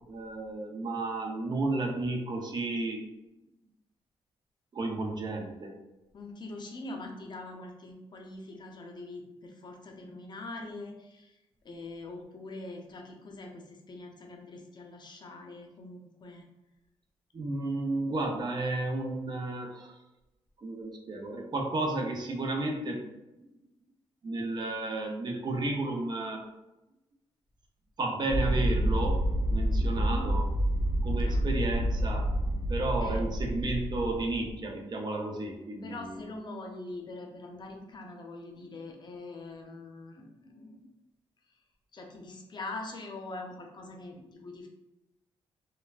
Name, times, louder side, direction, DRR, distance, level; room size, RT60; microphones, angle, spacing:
voice 1, 0.1-3.0 4.7-5.8 17.3-20.0 20.6-23.0 23.4-23.5 24.2-26.4 28.0-29.2 29.5-30.5 31.0-32.3 32.7-36.3, right 2 dB, 45° right, 1 dB, 0.6 m, -32 dB
voice 2, 6.1-11.4 11.6-16.4 29.8-30.3 31.2-31.4 33.0-33.2 35.8-40.9 41.9-44.7, left 2 dB, 45° left, 2 dB, 0.6 m, -43 dB
sound 1, 28.3-34.5, equal, 65° right, 1.0 m, -28 dB
3.2 x 2.1 x 2.4 m, 0.95 s
cardioid pair, 70°, 10 cm